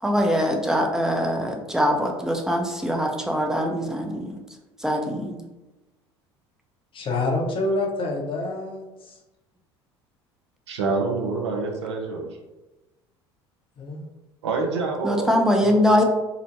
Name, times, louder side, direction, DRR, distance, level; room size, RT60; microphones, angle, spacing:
voice 1, 0.0-4.4 4.8-5.4 15.0-16.0, equal, 5° right, 2 dB, 0.4 m, -22 dB
voice 2, 6.9-9.2 13.8-14.1 15.7-15.8, left 2 dB, 35° left, 0 dB, 0.6 m, -27 dB
voice 3, 10.7-12.3 14.4-15.3, right 4 dB, 80° right, 1 dB, 0.5 m, -26 dB
2.8 x 2.1 x 2.8 m, 1.1 s
figure-of-eight pair, 65°, 15 cm